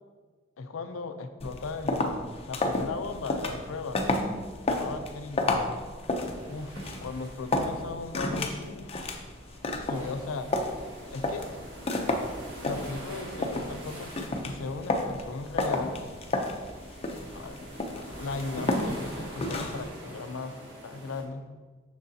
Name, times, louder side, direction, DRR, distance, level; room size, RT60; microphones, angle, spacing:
voice 1, 0.6-2.1 2.5-4.0 4.7-5.5 6.5-9.2 9.8-10.5 11.1-11.5 12.6-16.0 17.3-17.6 18.0-21.4, left 3 dB, 80° left, 8 dB, 0.5 m, -37 dB
sound 1, 1.4-19.9, left 2 dB, 30° left, 0.5 m, -32 dB
sound 2, 3.4-21.2, equal, 60° right, 1.6 m, -46 dB
6.3 x 6.1 x 2.7 m, 1.4 s
head